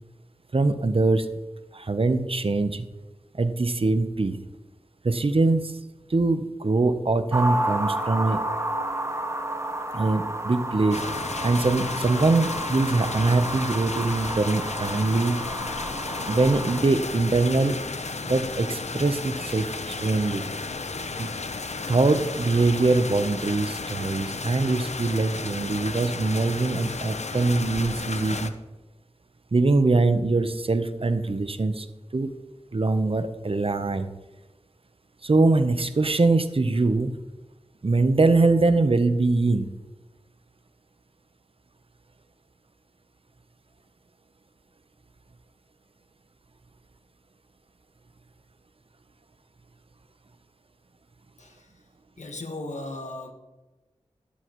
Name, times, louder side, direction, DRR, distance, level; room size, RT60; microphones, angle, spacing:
voice 1, 0.5-1.3 1.7-2.9 3.4-4.4 5.0-5.7 6.1-8.4 9.9-11.0 11.4-15.4 16.3-17.8 18.2-20.4 21.2-21.3 21.9-28.5 29.5-31.9 32.1-32.3 32.7-34.1 35.2-37.1 37.8-39.7, right 3 dB, 50° right, 10 dB, 0.8 m, -23 dB
sound 1, 7.3-16.8, right 1 dB, 25° right, 1.0 m, -31 dB
sound 2, 10.9-28.5, left 3 dB, 70° left, 0.7 m, -33 dB
voice 2, 51.4-51.7 52.2-53.3, left 2 dB, 90° left, 4 dB, 1.4 m, -36 dB
12.5 x 12.0 x 3.1 m, 1.1 s
wide cardioid pair, 70°, 12 cm